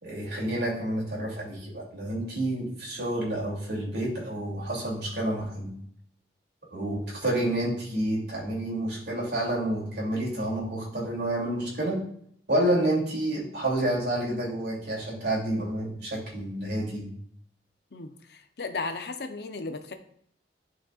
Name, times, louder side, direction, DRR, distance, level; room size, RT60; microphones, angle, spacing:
voice 1, 0.0-5.7 6.7-12.0 12.5-17.0, right 1 dB, 70° right, -4 dB, 2.7 m, -29 dB
voice 2, 17.9-19.9, left 3 dB, 65° left, 7 dB, 0.7 m, -35 dB
11.0 x 4.2 x 2.4 m, 0.67 s
head